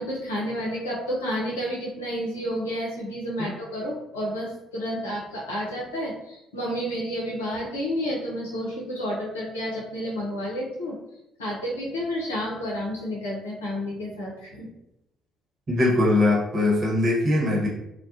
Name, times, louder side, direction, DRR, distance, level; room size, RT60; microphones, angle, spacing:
voice 1, 0.0-11.0 11.4-14.7, equal, 80° left, -4 dB, 0.6 m, -30 dB
voice 2, 15.7-17.7, left 2 dB, 40° right, -5 dB, 1.0 m, -21 dB
2.2 x 2.1 x 2.5 m, 0.85 s
figure-of-eight pair, 45°, 0 cm